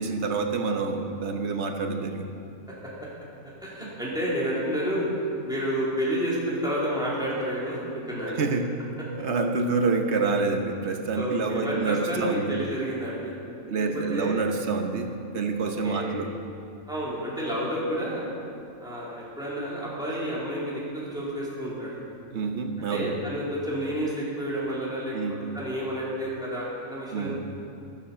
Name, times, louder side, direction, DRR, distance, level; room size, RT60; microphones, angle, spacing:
voice 1, 0.0-2.3 3.8-3.9 8.4-8.9 9.1-12.5 13.7-16.3 22.3-23.2 25.1-25.5 27.1-27.4, right 4 dB, 55° right, 5 dB, 1.2 m, -27 dB
voice 2, 3.4-5.1 5.4-7.8 8.1-8.4 11.1-13.3 14.1-14.4 15.6-16.1 16.9-18.3 18.8-22.0 22.9-25.1 25.5-27.4, equal, 5° right, -8 dB, 3.7 m, -30 dB
13.5 x 13.0 x 5.7 m, 2.5 s
omnidirectional pair, 1.5 m